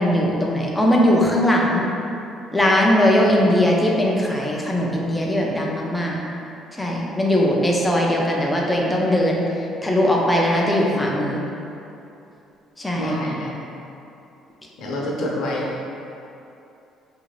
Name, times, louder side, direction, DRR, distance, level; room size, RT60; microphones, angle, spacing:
voice 1, 0.0-1.9 2.5-6.2 6.7-9.4 9.8-11.4 12.8-13.2, left 1 dB, 5° left, -2 dB, 0.3 m, -19 dB
voice 2, 13.0-13.5 14.8-15.8, equal, 60° left, -3 dB, 0.5 m, -26 dB
3.0 x 2.4 x 3.1 m, 2.8 s
cardioid pair, 170°, 0 cm